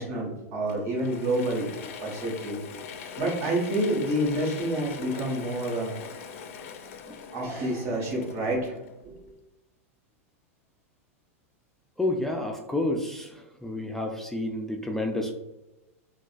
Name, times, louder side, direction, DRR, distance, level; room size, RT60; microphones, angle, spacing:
voice 1, 0.0-1.7 2.0-2.6 3.2-5.9 7.3-8.8 9.0-9.1, right 1 dB, 60° right, -2 dB, 1.5 m, -28 dB
Mechanisms / Drill, 0.7-9.3, left 6 dB, 65° left, 0.4 m, -42 dB
voice 2, 12.0-15.3, left 2 dB, 5° left, 1 dB, 0.3 m, -30 dB
3.8 x 2.3 x 2.4 m, 1.0 s
hypercardioid pair, 110°, 8 cm